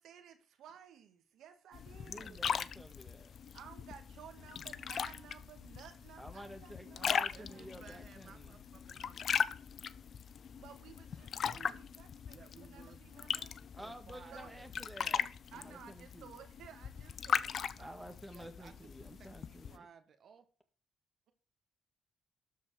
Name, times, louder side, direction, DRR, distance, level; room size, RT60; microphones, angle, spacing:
voice 1, 0.0-2.5 3.5-7.9 10.5-13.5 14.3-14.5 15.5-18.0, right 8 dB, 80° right, 1.8 m, -56 dB
sound 1, 1.7-19.8, left 7 dB, 55° left, 0.6 m, -39 dB
voice 2, 2.0-3.3 6.2-8.6 13.7-16.4 17.8-19.8, equal, ahead, 1.8 m, -51 dB
voice 3, 7.3-9.4 11.4-11.8 12.3-13.1 13.8-14.8 18.3-20.5, right 6 dB, 55° right, 1.6 m, -58 dB
13.0 x 4.6 x 7.8 m
cardioid pair, 90°, 0 cm